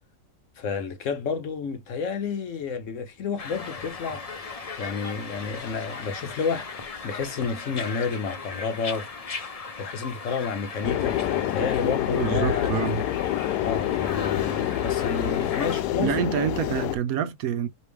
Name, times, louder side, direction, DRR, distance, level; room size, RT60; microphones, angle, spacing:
voice 1, 0.6-9.1 9.8-12.7 13.6-16.1, left 5 dB, 60° left, 0.9 m, -30 dB
sound 1, 3.4-15.8, left 4 dB, 45° left, 0.4 m, -38 dB
sound 2, 10.8-17.0, left 12 dB, 85° left, 1.2 m, -27 dB
voice 2, 12.1-13.0 16.0-17.7, right 8 dB, 75° right, 1.0 m, -27 dB
5.0 x 3.0 x 3.2 m
omnidirectional pair, 1.7 m